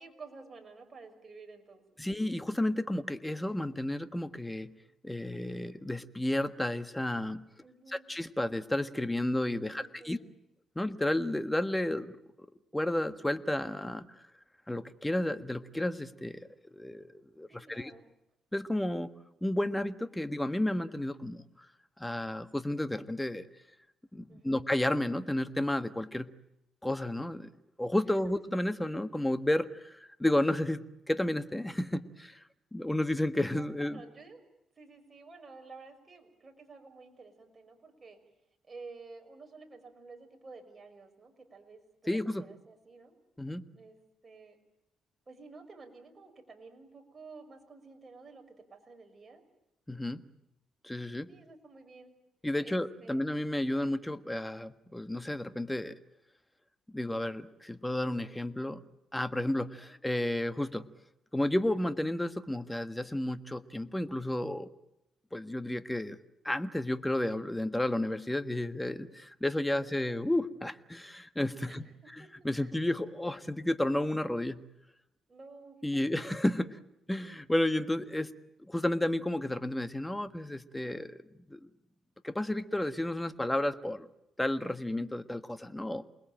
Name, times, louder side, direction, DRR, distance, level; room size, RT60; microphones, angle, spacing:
voice 1, 0.0-1.8 7.6-8.1 9.7-10.3 17.5-18.1 24.3-24.6 33.5-34.4 34.8-38.2 38.7-43.2 43.7-44.0 44.2-44.6 45.3-49.4 51.3-52.1 52.6-53.8 59.8-60.0 69.7-70.2 71.6-72.3 72.6-72.7 75.3-76.1 76.6-76.7, right 4 dB, 30° right, 4 dB, 5.9 m, -52 dB
voice 2, 2.0-4.7 5.0-7.4 7.9-10.2 10.7-12.5 12.7-14.1 14.7-17.9 18.5-19.1 19.4-21.4 22.0-23.4 24.1-26.3 26.8-27.5 27.8-32.4 32.7-34.0 42.1-42.4 43.4-43.6 49.9-50.2 50.8-51.3 52.4-56.0 56.9-58.8 59.1-60.9 61.3-64.7 65.3-66.2 66.4-71.8 72.2-74.6 75.8-76.8 77.1-78.3 78.6-81.2 81.5-81.6 82.2-84.1 84.4-86.0, left 1 dB, 10° left, 11 dB, 1.5 m, -32 dB
28.5 x 20.5 x 9.0 m, 0.85 s
cardioid pair, 90°, 0 cm